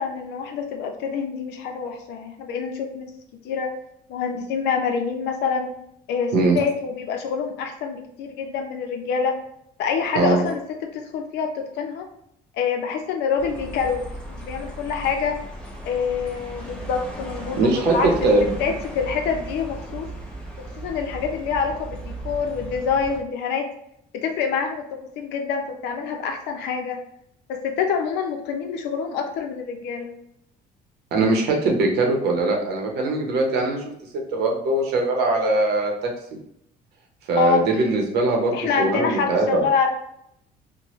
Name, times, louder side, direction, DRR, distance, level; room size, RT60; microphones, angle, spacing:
voice 1, 0.0-3.1 3.4-3.7 4.1-5.7 6.1-9.4 9.8-12.0 12.6-14.0 14.4-15.4 15.8-18.1 18.6-20.1 20.8-23.7 24.1-27.0 27.5-30.1 37.4-37.6 38.5-39.9, left 6 dB, 80° left, 4 dB, 0.6 m, -26 dB
sound 1, 13.4-23.2, right 1 dB, 5° left, 0.7 m, -36 dB
voice 2, 17.6-18.5 31.1-33.8 34.3-35.9 37.3-39.6, right 2 dB, 75° right, 1 dB, 0.8 m, -21 dB
3.0 x 2.1 x 3.0 m, 0.75 s
cardioid pair, 110°, 17 cm